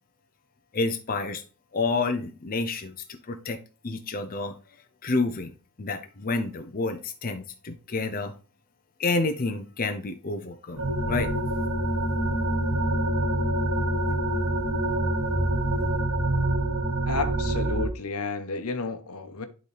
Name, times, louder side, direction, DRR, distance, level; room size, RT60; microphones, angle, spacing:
voice 1, 0.7-1.4 1.7-2.9 3.3-3.6 3.8-4.5 5.0-5.5 5.8-8.3 9.0-11.3, left 3 dB, 40° left, 0.8 m, -29 dB
sound 1, 10.8-17.9, right 1 dB, 65° right, 1.9 m, -26 dB
voice 2, 17.1-19.4, left 4 dB, 75° left, 1.1 m, -32 dB
11.0 x 3.9 x 3.4 m
head